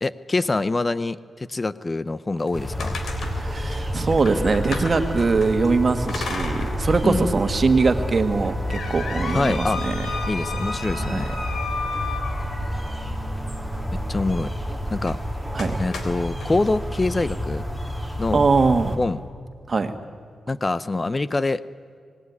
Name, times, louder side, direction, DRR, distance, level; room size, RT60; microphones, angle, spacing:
voice 1, 0.0-3.0 7.0-7.3 9.3-9.8 10.3-11.3 13.9-14.5 14.9-15.2 15.8-17.7 18.2-18.4 19.0-19.2 20.5-21.6, left 2 dB, 30° left, 16 dB, 0.6 m, -25 dB
sound 1, 2.4-5.5 6.1-7.1 7.5-7.6 8.2-12.8 15.0-15.2 15.6-16.5, left 4 dB, 75° left, 3.4 m, -34 dB
sound 2, 2.5-19.0, equal, 5° left, 3.6 m, -29 dB
voice 2, 3.2-10.1 10.9-11.3 15.5-15.7 18.3-19.0 19.7-19.9, right 4 dB, 45° right, 8 dB, 1.8 m, -22 dB
Trumpet, 3.9-13.5, equal, 55° left, 6.7 m, -44 dB
26.5 x 19.5 x 9.6 m, 2.1 s
cardioid pair, 90°, 0 cm